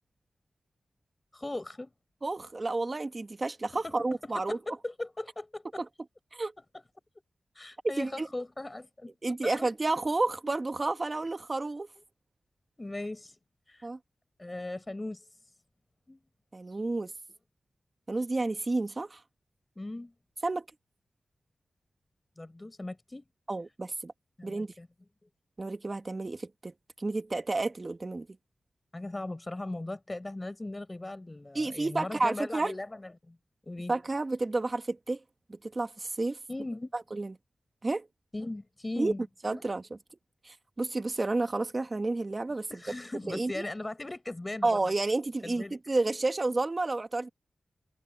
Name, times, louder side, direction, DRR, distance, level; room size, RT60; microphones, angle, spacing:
voice 1, 1.3-1.9 3.8-3.9 4.2-5.8 7.5-9.7 12.8-13.4 13.7-13.9 14.4-15.3 16.1-16.2 19.8-20.1 22.4-23.2 24.4-24.9 28.9-33.4 33.7-33.9 36.5-36.9 38.3-39.2 39.5-39.6 42.7-44.8 45.4-45.8, left 2 dB, 25° left, 4.5 m, -38 dB
voice 2, 2.2-4.6 6.3-6.5 8.0-8.3 9.2-11.9 13.8-14.0 16.5-17.1 18.1-19.2 20.4-20.7 23.5-24.1 24.4-24.7 25.6-28.3 31.5-32.7 33.9-35.2 35.5-36.4 36.9-37.3 37.8-38.1 39.0-39.1 39.4-39.8 40.4-42.7 43.3-43.5 44.6-47.3, right 2 dB, 35° right, 1.4 m, -31 dB
wide cardioid pair, 80°, 0 cm